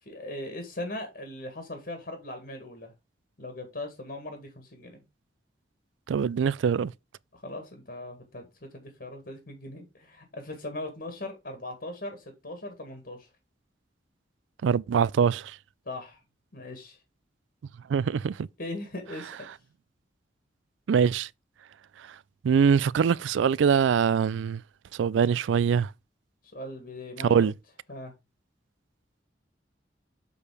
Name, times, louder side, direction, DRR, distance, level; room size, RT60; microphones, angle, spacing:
voice 1, 0.0-2.9 3.4-5.0 7.3-13.3 15.9-16.2 16.5-17.0 18.6-19.5 26.5-27.5 27.9-28.1, left 1 dB, 55° left, 1.8 m, -39 dB
voice 2, 6.1-6.9 14.6-15.5 17.9-18.5 20.9-21.3 22.4-24.6 25.0-25.9 27.2-27.5, right 7 dB, 85° right, 0.3 m, -23 dB
7.0 x 4.6 x 4.9 m
head